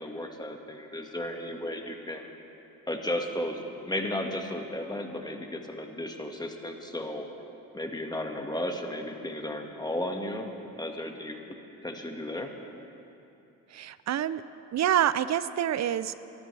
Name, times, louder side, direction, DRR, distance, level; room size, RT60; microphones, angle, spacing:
voice 1, 0.0-2.3 2.9-7.3 7.7-10.5 10.7-11.4 11.8-12.5, left 1 dB, 10° left, 3 dB, 1.7 m, -34 dB
voice 2, 13.7-14.4 14.7-16.1, right 10 dB, 50° right, 15 dB, 0.5 m, -27 dB
23.5 x 13.0 x 3.4 m, 2.8 s
supercardioid pair, 70°, 34 cm